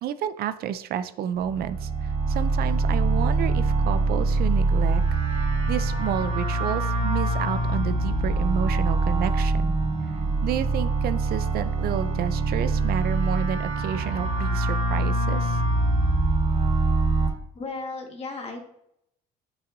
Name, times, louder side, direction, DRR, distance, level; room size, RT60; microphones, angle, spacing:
voice 1, 0.0-9.7 10.4-15.6, right 9 dB, 65° right, 12 dB, 0.5 m, -30 dB
sound 1, 1.4-17.3, right 2 dB, 40° right, 2.7 m, -24 dB
voice 2, 17.5-18.6, left 3 dB, 35° left, 2 dB, 1.6 m, -34 dB
8.9 x 6.2 x 2.6 m, 0.74 s
cardioid pair, 110°, 17 cm